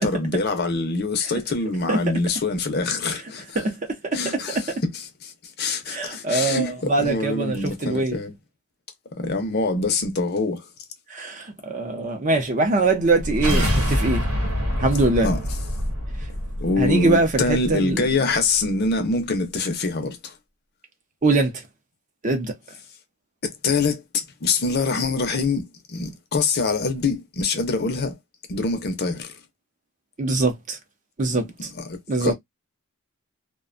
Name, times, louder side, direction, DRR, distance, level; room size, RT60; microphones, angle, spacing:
voice 1, 0.0-3.6 4.1-5.3 5.6-8.3 9.2-10.7 13.5-13.8 15.2-15.4 16.6-20.3 23.4-28.2 28.5-29.3 31.6-32.3, left 3 dB, 45° left, 0.6 m, -25 dB
voice 2, 3.6-4.6 5.9-8.2 11.1-14.2 14.8-15.3 16.8-18.0 21.2-21.5 22.2-22.5 30.2-30.8 31.2-31.7 32.1-32.3, right 3 dB, 35° right, 0.5 m, -23 dB
sound 1, 13.0-18.1, equal, 80° right, 1.0 m, -26 dB
2.5 x 2.2 x 2.4 m
head